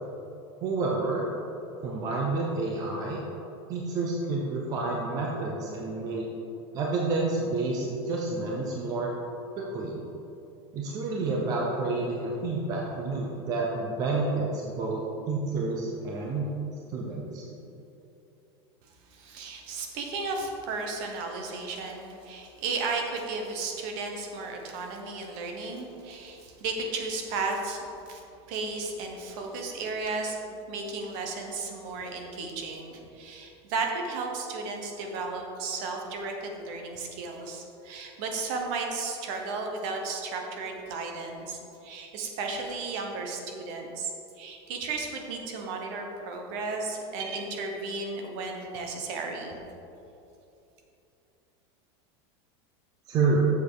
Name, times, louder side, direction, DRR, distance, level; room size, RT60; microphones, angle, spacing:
voice 1, 0.6-1.3 1.8-3.2 3.7-6.3 6.7-9.1 9.6-10.0 10.7-16.5 16.9-17.4 53.1-53.4, right 3 dB, 25° right, -2 dB, 0.7 m, -29 dB
voice 2, 19.1-28.2 28.5-30.4 30.7-44.1 44.4-49.6, right 3 dB, 50° right, 2 dB, 1.1 m, -34 dB
7.2 x 6.6 x 4.9 m, 2.8 s
supercardioid pair, 175°, 14 cm